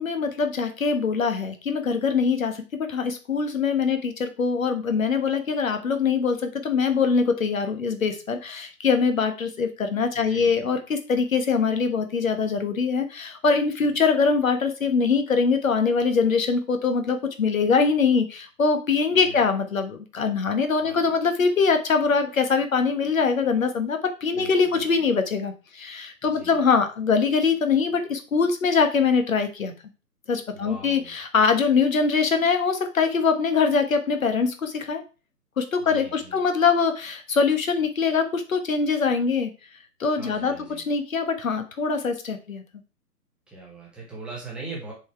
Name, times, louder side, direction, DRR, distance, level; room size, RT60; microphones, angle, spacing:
voice 1, 0.0-29.7 30.3-35.0 35.6-39.5 40.0-40.5 40.9-42.6, left 5 dB, 55° left, 8 dB, 1.4 m, -23 dB
voice 2, 10.1-10.8 13.8-14.0 19.2-19.5 20.8-21.0 24.3-24.8 26.3-26.6 30.5-31.1 35.8-36.4 40.2-40.8 43.5-44.9, right 2 dB, ahead, -4 dB, 1.0 m, -41 dB
6.7 x 4.1 x 4.4 m, 0.33 s
figure-of-eight pair, 140°, 48 cm